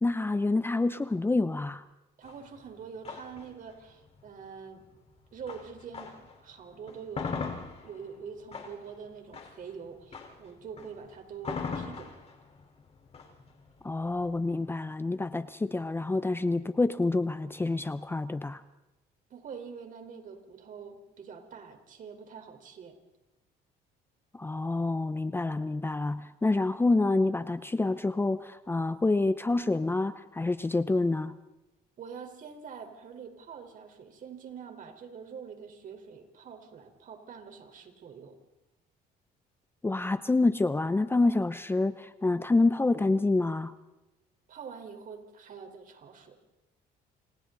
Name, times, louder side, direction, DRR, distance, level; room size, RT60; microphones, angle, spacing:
voice 1, 0.0-1.8 13.8-18.6 24.3-31.3 39.8-43.7, left 2 dB, 15° left, 13 dB, 0.7 m, -27 dB
sound 1, 2.2-6.4 6.8-14.7, left 5 dB, 35° left, 4.3 m, -41 dB
voice 2, 2.2-4.9 5.3-7.5 7.8-12.1 19.3-23.0 32.0-38.4 44.5-46.4, right 6 dB, 50° right, 5 dB, 4.3 m, -45 dB
29.0 x 28.0 x 4.0 m, 1.0 s
cardioid pair, 110°, 17 cm